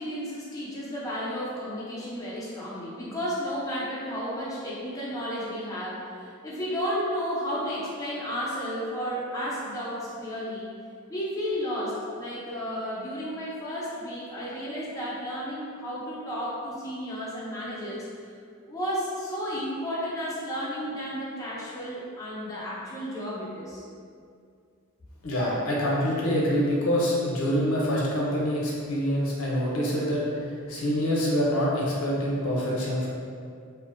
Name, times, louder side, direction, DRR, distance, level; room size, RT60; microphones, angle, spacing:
voice 1, 0.0-10.8 11.1-18.3 18.6-23.8, equal, 15° left, -7 dB, 0.4 m, -33 dB
voice 2, 25.2-30.2 30.7-33.1, equal, 70° left, -5 dB, 0.6 m, -25 dB
2.5 x 2.1 x 2.4 m, 2.3 s
head